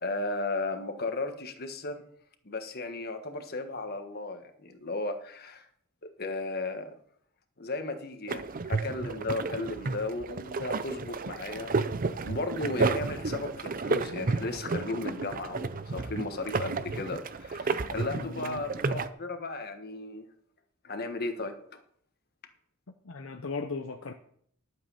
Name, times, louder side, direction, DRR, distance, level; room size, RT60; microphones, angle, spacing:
voice 1, 0.0-2.0 2.4-5.7 6.0-6.9 7.6-11.9 12.2-20.3 20.8-21.8, left 2 dB, 50° left, 6 dB, 1.4 m, -35 dB
sound 1, 8.3-19.1, right 4 dB, 40° right, 0.6 m, -32 dB
voice 2, 18.1-18.6 23.0-24.1, left 4 dB, 70° left, 5 dB, 0.7 m, -37 dB
12.0 x 7.7 x 5.6 m, 0.63 s
head